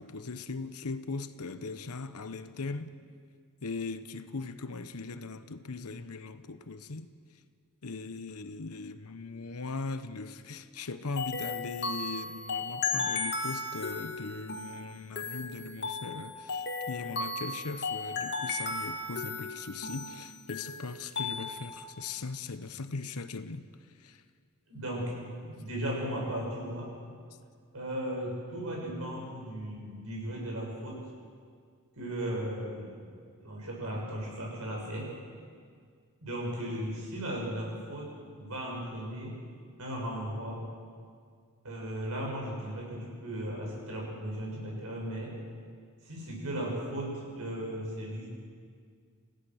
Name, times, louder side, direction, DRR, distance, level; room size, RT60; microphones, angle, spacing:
voice 1, 0.0-2.9 3.6-7.1 7.8-23.7 24.0-24.2, left 3 dB, 80° left, 1.0 m, -39 dB
sound 1, 11.2-21.8, left 3 dB, 50° left, 2.2 m, -35 dB
voice 2, 24.7-27.0 27.7-31.1 32.0-33.1 33.4-35.2 36.2-39.4 39.8-40.7 41.6-45.3 46.0-48.3, right 1 dB, 70° right, 7.4 m, -36 dB
29.0 x 16.5 x 6.5 m
head